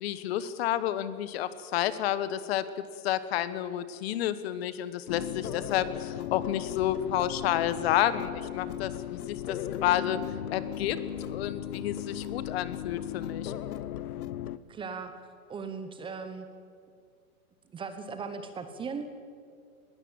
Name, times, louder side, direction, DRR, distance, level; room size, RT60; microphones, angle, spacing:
voice 1, 0.0-10.2 10.5-11.0 11.3-13.5, left 11 dB, 45° left, 14 dB, 1.2 m, -30 dB
sound 1, 5.1-14.6, left 11 dB, 80° left, 1.0 m, -37 dB
voice 2, 14.7-15.1 15.5-16.5 17.7-19.1, right 5 dB, 10° right, 9 dB, 1.0 m, -38 dB
20.0 x 16.0 x 9.0 m, 2.2 s
hypercardioid pair, 150°, 44 cm